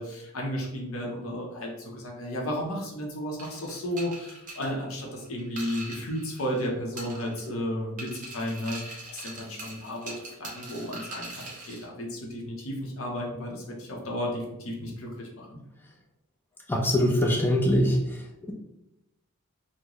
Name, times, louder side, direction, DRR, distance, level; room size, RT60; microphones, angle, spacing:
voice 1, 0.0-15.6, equal, 65° left, -1 dB, 0.8 m, -33 dB
sound 1, 3.4-6.7 7.0-7.6 8.0-11.9, right 2 dB, 35° right, 1.0 m, -42 dB
voice 2, 16.7-18.5, equal, 10° left, 0 dB, 0.5 m, -24 dB
3.8 x 2.1 x 3.0 m, 0.88 s
head